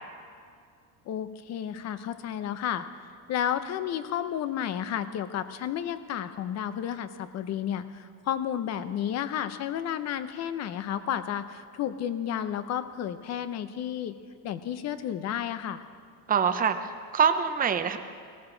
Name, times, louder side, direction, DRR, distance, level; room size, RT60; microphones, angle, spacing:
voice 1, 1.1-2.9 3.3-14.2 14.4-15.8, left 10 dB, 35° left, 12 dB, 0.7 m, -32 dB
voice 2, 16.3-18.0, right 7 dB, 20° right, 8 dB, 0.7 m, -25 dB
19.5 x 14.5 x 3.9 m, 2.2 s
cardioid pair, 140°, 44 cm